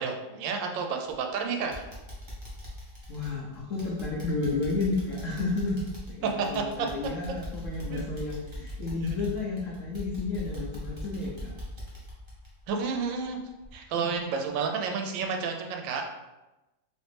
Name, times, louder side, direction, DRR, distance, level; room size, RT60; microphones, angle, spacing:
voice 1, 0.0-1.8 6.4-6.9 7.9-8.0 9.0-9.1 12.7-13.4 13.7-16.0, right 5 dB, 80° right, 3 dB, 1.2 m, -31 dB
sound 1, 1.0-1.4 1.7-13.3 13.6-13.7 14.2-14.3, equal, 30° right, 0.5 m, -41 dB
voice 2, 3.1-11.5, left 3 dB, 80° left, -4 dB, 0.7 m, -32 dB
3.1 x 2.9 x 3.2 m, 1.0 s
omnidirectional pair, 2.1 m